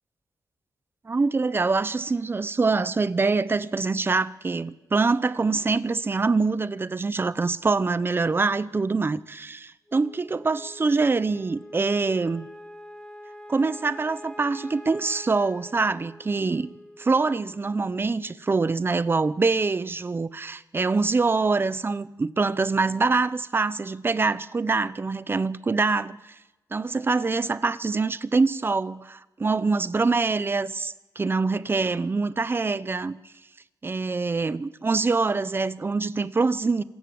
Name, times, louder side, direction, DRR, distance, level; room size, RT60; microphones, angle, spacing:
voice 1, 1.0-12.5 13.5-16.7 17.0-26.2 26.7-33.2 33.8-36.8, right 4 dB, 30° right, 0.8 m, -24 dB
Wind instrument woodwind instrument, 9.9-18.3, left 1 dB, 10° left, 2.5 m, -45 dB
26.5 x 16.0 x 7.9 m
cardioid pair, 100°, 8 cm